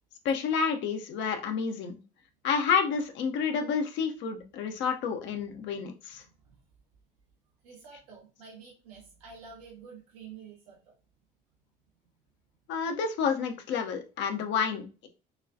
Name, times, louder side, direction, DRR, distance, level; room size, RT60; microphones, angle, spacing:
voice 1, 0.2-2.0 2.4-6.2 12.7-15.1, left 6 dB, 70° left, 5 dB, 0.8 m, -29 dB
voice 2, 6.2-6.6 7.6-10.9, right 6 dB, 85° right, -3 dB, 1.5 m, -49 dB
6.0 x 2.3 x 2.7 m, 0.33 s
hypercardioid pair, 60°, 20 cm